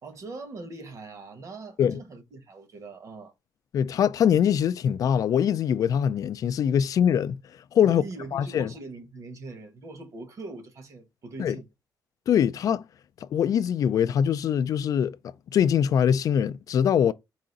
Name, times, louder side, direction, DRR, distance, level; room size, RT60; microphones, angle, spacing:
voice 1, 0.0-3.3 7.8-11.7, right 3 dB, 45° right, 1.1 m, -41 dB
voice 2, 3.7-7.4 7.7-8.0 8.3-8.7 11.4-11.6 12.3-12.8 13.3-15.2 15.5-17.1, left 8 dB, 50° left, 0.3 m, -23 dB
4.8 x 2.5 x 3.8 m
cardioid pair, 160°, 7 cm